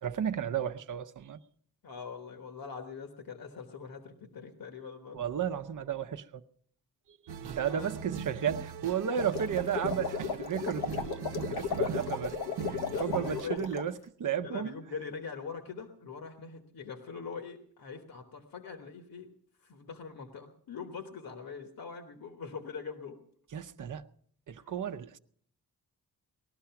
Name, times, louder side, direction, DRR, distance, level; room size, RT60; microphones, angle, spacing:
voice 1, 0.0-1.4 5.1-6.4 7.1-7.2 7.5-11.2 11.5-12.4 12.6-13.9 14.2-14.7 23.5-24.0 24.5-25.2, right 8 dB, 55° right, 0.7 m, -33 dB
voice 2, 1.8-5.2 7.4-7.9 12.8-13.6 14.4-19.3 19.6-23.2 24.6-24.7, left 5 dB, 65° left, 1.4 m, -43 dB
sound 1, 7.3-13.4, right 7 dB, 80° right, 0.9 m, -40 dB
sound 2, 9.0-13.9, left 5 dB, 85° left, 1.0 m, -35 dB
19.5 x 12.5 x 5.8 m
wide cardioid pair, 135°, 38 cm